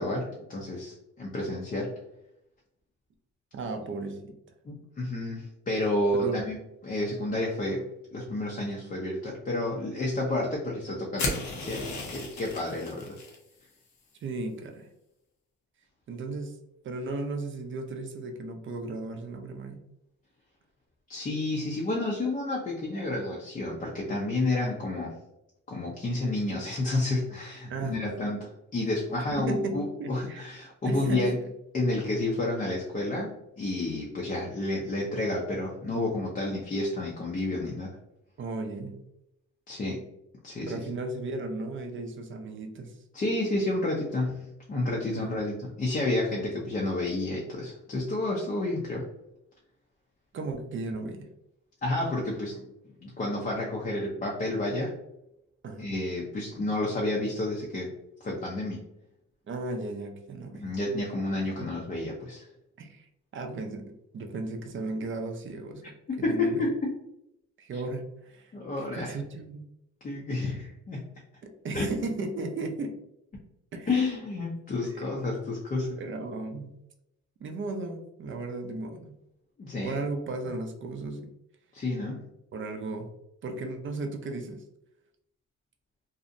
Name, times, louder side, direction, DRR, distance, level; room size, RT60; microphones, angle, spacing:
voice 1, 0.0-2.0 4.6-6.6 6.8-13.2 21.1-25.2 25.7-31.4 31.7-33.3 33.6-38.0 39.7-40.1 40.4-40.8 43.1-49.1 51.8-52.7 53.0-54.9 55.8-57.9 58.2-58.9 60.5-62.5 66.1-67.0 68.5-69.2 70.0-71.1 71.7-71.9 73.9-76.0 79.6-80.0 81.7-82.3, left 2 dB, 30° left, -2 dB, 0.5 m, -30 dB
voice 2, 3.5-4.4 6.1-6.4 14.2-14.9 16.1-16.6 16.8-19.8 27.7-28.3 29.3-30.5 30.8-31.3 38.4-39.0 40.7-43.0 45.1-45.5 50.3-51.3 55.6-55.9 59.5-60.7 62.8-63.1 63.3-66.7 67.6-68.5 68.9-69.6 71.4-73.0 73.7-74.0 74.8-75.1 76.0-76.7 77.4-79.1 79.8-81.3 82.5-83.1 83.4-84.6, right 3 dB, 40° right, 5 dB, 0.5 m, -35 dB
sound 1, 11.2-13.4, left 2 dB, 65° left, 0.7 m, -34 dB
2.6 x 2.0 x 2.5 m, 0.84 s
cardioid pair, 90°, 30 cm